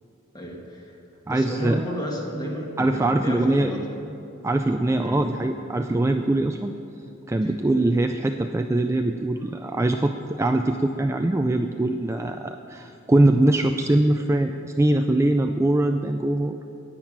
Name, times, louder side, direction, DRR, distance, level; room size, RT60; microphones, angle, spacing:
voice 1, 0.3-0.8 1.3-4.1 5.0-5.2, equal, 20° left, -1 dB, 1.9 m, -32 dB
voice 2, 1.3-1.8 2.8-3.7 4.4-6.7 7.3-16.6, right 1 dB, 15° right, 5 dB, 0.3 m, -22 dB
10.5 x 9.0 x 8.6 m, 2.8 s
head